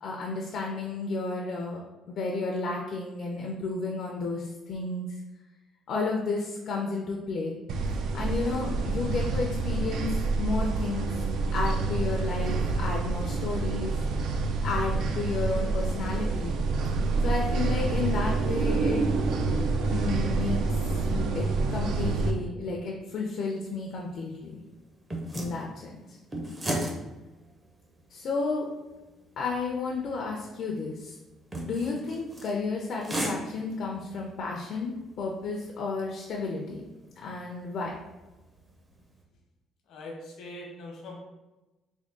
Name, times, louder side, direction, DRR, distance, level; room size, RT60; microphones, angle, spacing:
voice 1, 0.0-1.8 2.1-5.2 5.9-7.6 7.9-11.2 11.5-14.3 14.6-16.6 17.2-19.0 19.9-20.6 21.1-24.6 25.3-26.2 28.1-28.7 29.4-31.2 31.6-36.8 37.2-37.9, left 3 dB, 55° left, -1 dB, 0.5 m, -32 dB
sound 1, 7.7-22.3, right 3 dB, 70° right, 0.3 m, -27 dB
sound 2, 23.4-39.2, right 1 dB, 20° right, 0.5 m, -40 dB
voice 2, 39.9-41.2, left 1 dB, 75° left, 0 dB, 0.9 m, -42 dB
3.5 x 2.2 x 3.7 m, 1.1 s
cardioid pair, 145°, 0 cm